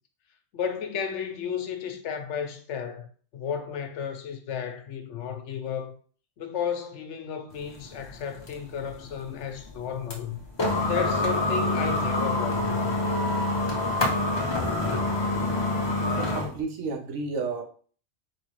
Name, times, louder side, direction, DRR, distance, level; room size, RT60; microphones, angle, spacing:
voice 1, 0.5-3.1 3.3-5.9 6.4-10.4 10.8-13.0, left 7 dB, 75° left, 1.0 m, -33 dB
sound 1, 7.5-16.6, left 2 dB, 30° left, 0.6 m, -27 dB
voice 2, 16.2-17.6, right 4 dB, 80° right, 1.1 m, -31 dB
4.1 x 3.1 x 3.1 m
omnidirectional pair, 1.2 m